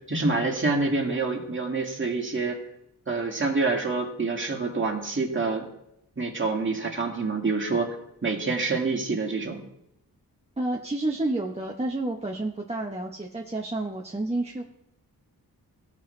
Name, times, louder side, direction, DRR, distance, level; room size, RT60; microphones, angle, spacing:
voice 1, 0.1-2.6 3.1-5.7 6.2-7.9 8.2-9.6, right 3 dB, 30° right, 0 dB, 2.0 m, -27 dB
voice 2, 10.6-14.6, right 2 dB, 15° right, -1 dB, 0.9 m, -30 dB
16.5 x 6.0 x 3.2 m, 0.81 s
wide cardioid pair, 95°, 37 cm